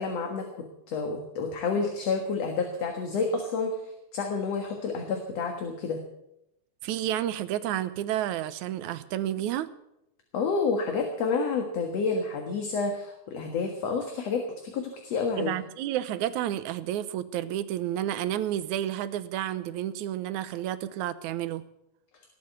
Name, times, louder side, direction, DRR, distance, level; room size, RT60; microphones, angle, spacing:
voice 1, 0.0-3.7 4.1-6.0 10.3-15.5, left 4 dB, 60° left, 4 dB, 2.7 m, -29 dB
voice 2, 6.8-9.7 15.4-21.6, right 12 dB, 90° right, 14 dB, 2.2 m, -30 dB
19.0 x 8.6 x 8.2 m, 0.83 s
omnidirectional pair, 3.3 m